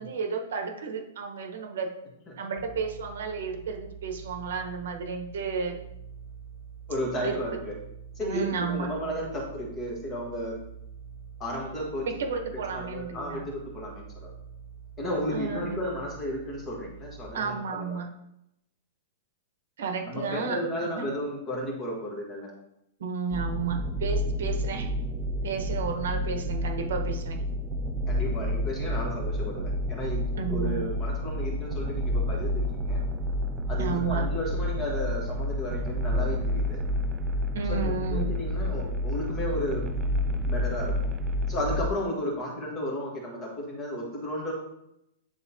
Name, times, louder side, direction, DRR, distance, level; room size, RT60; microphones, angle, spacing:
voice 1, 0.0-2.0 2.4-5.8 7.2-7.6 8.2-8.9 12.1-13.4 15.3-15.8 17.3-18.1 19.8-20.6 20.8-21.1 23.0-24.9 25.4-27.4 30.4-30.8 33.8-34.2 37.5-38.3, right 5 dB, 75° right, 4 dB, 1.1 m, -32 dB
sound 1, 2.6-17.3, right 6 dB, 40° left, 0.5 m, -45 dB
voice 2, 6.9-7.7 8.1-10.6 11.4-12.1 12.5-14.3 15.0-18.0 20.0-22.5 28.1-33.1 33.7-36.8 37.7-39.8 40.5-41.0 41.5-44.5, equal, 15° left, -2 dB, 1.5 m, -33 dB
sound 2, 23.3-41.9, left 1 dB, 15° right, 0.3 m, -29 dB
9.8 x 3.6 x 2.8 m, 0.82 s
supercardioid pair, 175°, 0 cm